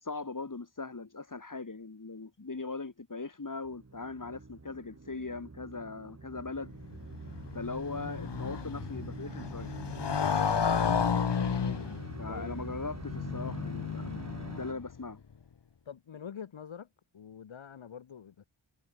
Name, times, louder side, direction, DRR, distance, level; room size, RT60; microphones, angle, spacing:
voice 1, 0.0-6.7 7.5-9.7 12.2-14.2 14.5-15.2, left 3 dB, 45° left, 5.6 m, -40 dB
sound 1, 3.6-14.7, right 3 dB, 35° right, 3.3 m, -45 dB
Motorcycle, 6.8-15.0, left 6 dB, 65° left, 1.9 m, -33 dB
voice 2, 12.3-12.7 15.9-16.9 17.1-18.5, left 7 dB, 85° left, 2.1 m, -45 dB
cardioid pair, 55°, 45 cm